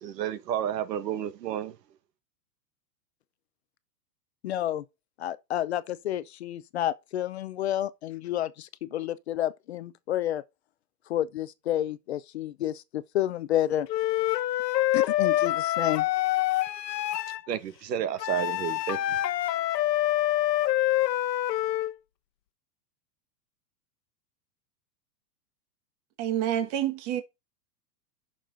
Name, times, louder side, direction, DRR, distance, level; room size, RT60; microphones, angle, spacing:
voice 1, 0.0-1.7 17.5-19.2, right 10 dB, 85° right, 1.7 m, -31 dB
voice 2, 4.4-4.8 5.2-10.4 11.1-13.9 14.9-16.1, left 12 dB, 45° left, 0.5 m, -30 dB
Wind instrument woodwind instrument, 13.9-17.4 18.2-21.9, left 14 dB, 85° left, 1.0 m, -26 dB
voice 3, 26.2-27.2, right 11 dB, 25° right, 1.1 m, -28 dB
9.2 x 6.5 x 3.8 m
supercardioid pair, 175°, 48 cm